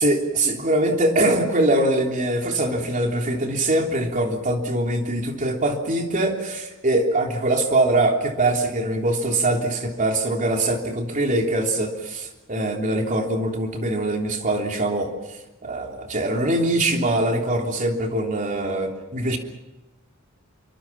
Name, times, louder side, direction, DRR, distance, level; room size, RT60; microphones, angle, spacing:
voice 1, 0.0-15.1 15.6-19.4, right 1 dB, 40° right, 2 dB, 3.3 m, -23 dB
27.0 x 24.0 x 5.9 m, 1.0 s
head